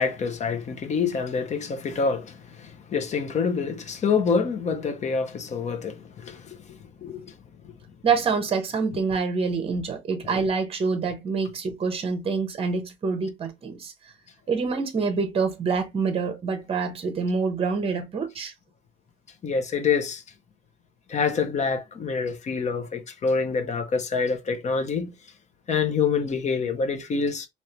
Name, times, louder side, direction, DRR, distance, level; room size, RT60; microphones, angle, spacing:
voice 1, 0.0-7.3 19.4-20.2 21.1-25.1 25.7-27.5, left 5 dB, 35° left, 0.6 m, -26 dB
voice 2, 8.0-13.9 14.5-18.5, right 4 dB, 30° right, 0.8 m, -26 dB
3.2 x 2.9 x 2.9 m
cardioid pair, 170°, 20 cm